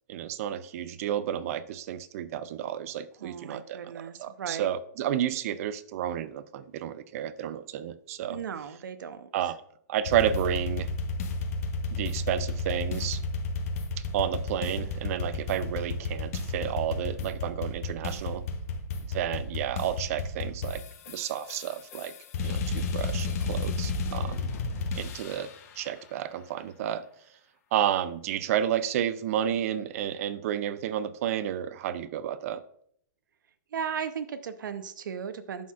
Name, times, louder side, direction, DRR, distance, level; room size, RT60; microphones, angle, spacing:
voice 1, 0.1-8.4 9.3-9.6 9.9-10.9 11.9-13.2 14.1-18.4 19.1-20.8 21.1-22.1 22.4-24.5 25.0-25.5 25.8-27.0 27.7-32.6, right 10 dB, 50° right, 0.5 m, -31 dB
voice 2, 3.2-4.7 8.3-9.5 33.7-35.7, right 7 dB, 80° right, 0.7 m, -36 dB
sound 1, 10.0-25.6, left 3 dB, 50° left, 0.9 m, -32 dB
11.5 x 4.2 x 2.4 m
hypercardioid pair, 150°, 10 cm